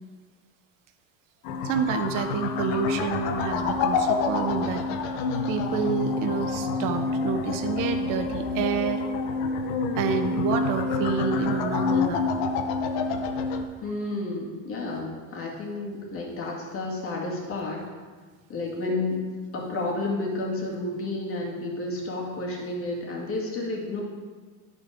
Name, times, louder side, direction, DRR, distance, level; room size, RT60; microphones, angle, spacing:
sound 1, 1.4-13.6, left 4 dB, 70° left, 0.9 m, -27 dB
voice 1, 1.6-4.8 5.5-9.1 10.0-12.3, right 6 dB, 55° right, 7 dB, 1.0 m, -29 dB
voice 2, 13.8-17.8 18.5-19.2 19.5-24.0, left 2 dB, 35° left, -2 dB, 2.1 m, -31 dB
11.0 x 4.4 x 4.9 m, 1.5 s
supercardioid pair, 125°, 39 cm